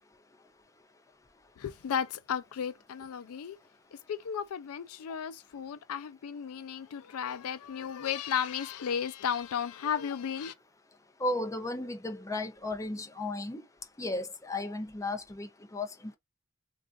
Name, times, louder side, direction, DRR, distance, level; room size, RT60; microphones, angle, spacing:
voice 1, 1.6-3.6 4.1-10.5, left 8 dB, 75° left, 0.4 m, -34 dB
voice 2, 11.2-13.6 14.0-16.2, left 2 dB, 15° left, 0.5 m, -35 dB
3.6 x 2.4 x 2.4 m
head